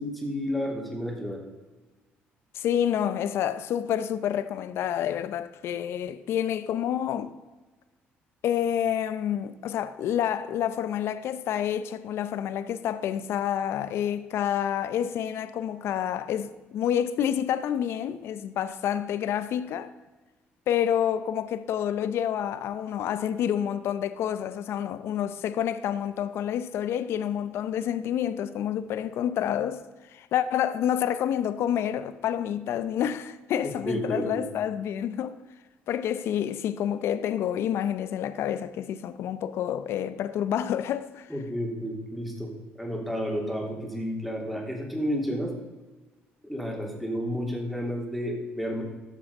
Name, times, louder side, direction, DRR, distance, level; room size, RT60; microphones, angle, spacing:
voice 1, 0.0-1.4 33.9-34.4 41.3-42.5 42.8-45.5 46.4-48.8, equal, ahead, 2.9 m, -31 dB
voice 2, 2.5-7.4 8.4-19.9 20.7-29.8 30.1-35.4 35.9-41.3, left 10 dB, 70° left, 0.7 m, -28 dB
13.0 x 6.3 x 5.4 m
cardioid pair, 85°, 4 cm